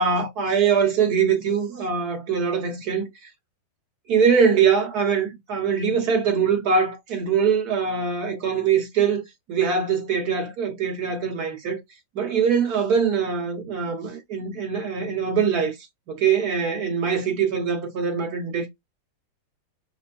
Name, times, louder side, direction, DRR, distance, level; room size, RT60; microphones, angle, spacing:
voice 1, 0.0-3.1 4.1-9.2 9.5-11.8 12.2-15.7 16.1-18.7, right 6 dB, 55° right, 1.8 m, -22 dB
5.0 x 2.2 x 2.5 m
omnidirectional pair, 2.1 m